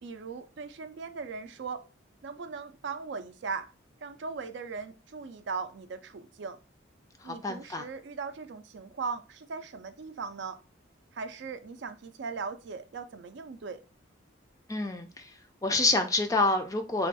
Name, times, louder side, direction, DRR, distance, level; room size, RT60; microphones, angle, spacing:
voice 1, 0.0-1.8 2.2-3.7 4.0-6.6 7.2-10.6 11.1-13.8, right 5 dB, 65° right, 0.4 m, -38 dB
voice 2, 7.2-7.8 14.7-15.3 15.6-17.1, left 2 dB, 15° left, 0.4 m, -27 dB
3.4 x 2.3 x 4.0 m
head